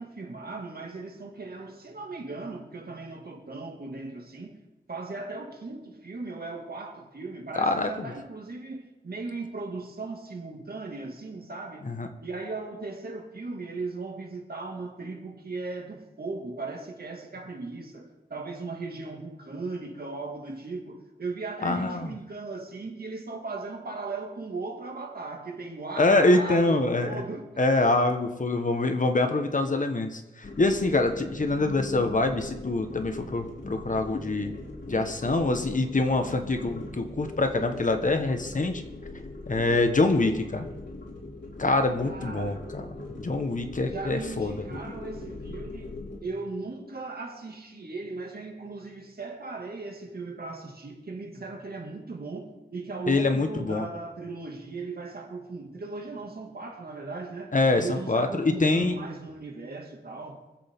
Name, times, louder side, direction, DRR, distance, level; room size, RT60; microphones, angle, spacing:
voice 1, 0.0-4.6 4.9-11.8 12.2-27.6 42.0-42.7 43.9-60.4, right 3 dB, 60° right, 2.2 m, -37 dB
voice 2, 7.6-8.1 11.8-12.1 21.6-22.1 26.0-27.2 27.6-34.5 34.9-38.8 39.5-40.7 41.6-42.8 43.2-44.5 53.1-53.8 57.5-59.0, left 2 dB, 45° left, 1.3 m, -25 dB
sound 1, 30.4-46.2, left 2 dB, 80° left, 3.6 m, -41 dB
25.0 x 8.3 x 3.7 m
wide cardioid pair, 100°, 18 cm